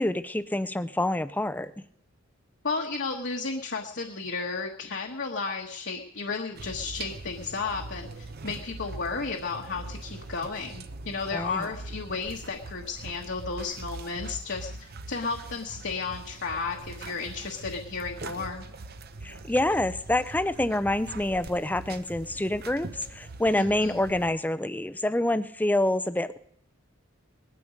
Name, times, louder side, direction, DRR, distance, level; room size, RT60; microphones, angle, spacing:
voice 1, 0.0-1.8 11.3-11.7 19.2-26.4, left 1 dB, 10° left, 14 dB, 0.5 m, -27 dB
voice 2, 2.6-18.7 23.5-24.0, left 4 dB, 55° left, 1 dB, 1.3 m, -33 dB
sound 1, 6.5-24.3, right 2 dB, 45° right, 0.7 m, -42 dB
19.5 x 12.5 x 5.2 m, 0.72 s
head